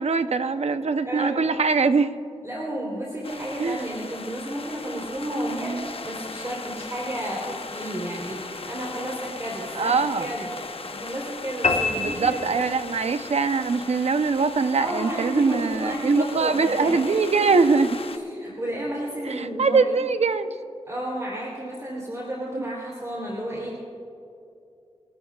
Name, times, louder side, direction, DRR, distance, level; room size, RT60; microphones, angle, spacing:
voice 1, 0.0-2.2 3.6-3.8 5.6-5.8 9.8-10.3 12.0-18.0 19.3-20.5 22.6-22.7, right 4 dB, 75° right, 10 dB, 0.7 m, -22 dB
voice 2, 1.0-1.5 2.4-10.5 10.9-12.4 14.7-17.7 18.1-19.8 20.9-23.8, right 1 dB, 30° right, -4 dB, 3.5 m, -32 dB
sound 1, 3.2-18.2, left 4 dB, 60° left, 0.8 m, -38 dB
sound 2, 11.6-13.2, left 3 dB, 85° left, 1.3 m, -26 dB
28.5 x 13.0 x 2.4 m, 2.7 s
cardioid pair, 55°, 11 cm